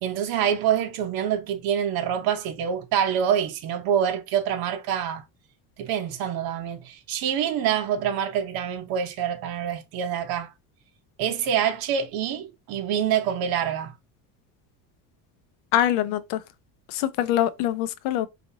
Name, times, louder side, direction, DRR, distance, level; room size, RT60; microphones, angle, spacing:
voice 1, 0.0-5.2 5.8-10.5 11.2-13.9, right 9 dB, 65° right, 0.9 m, -26 dB
voice 2, 15.7-16.4 16.9-18.3, left 12 dB, 80° left, 0.6 m, -24 dB
4.9 x 2.5 x 2.7 m
cardioid pair, 135°, 38 cm